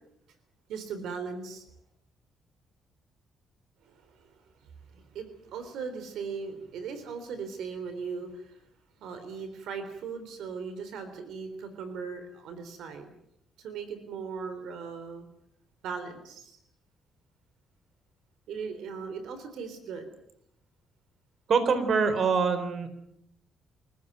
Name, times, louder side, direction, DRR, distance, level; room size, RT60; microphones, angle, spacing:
voice 1, 0.7-1.6 3.8-4.4 4.6-8.6 9.0-13.1 13.6-15.3 15.8-16.6 18.5-20.1, right 5 dB, 80° right, 9 dB, 3.6 m, -38 dB
voice 2, 21.5-22.9, right 5 dB, 55° right, 11 dB, 3.9 m, -24 dB
26.5 x 15.0 x 9.3 m, 0.77 s
cardioid pair, 90°, 0 cm